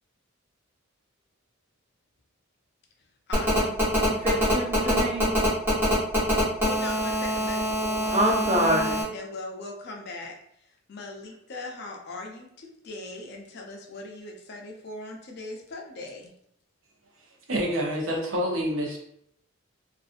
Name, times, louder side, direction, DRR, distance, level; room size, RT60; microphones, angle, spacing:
voice 1, 3.3-3.8 6.6-10.4 10.9-16.3, left 2 dB, 50° left, 1 dB, 0.5 m, -40 dB
Telephone, 3.3-9.0, equal, 10° right, 1.0 m, -25 dB
voice 2, 4.1-5.3 8.1-8.9, right 1 dB, 30° right, -1 dB, 0.4 m, -25 dB
voice 3, 17.5-19.0, equal, 70° right, -1 dB, 0.7 m, -27 dB
2.5 x 2.3 x 2.4 m, 0.72 s
head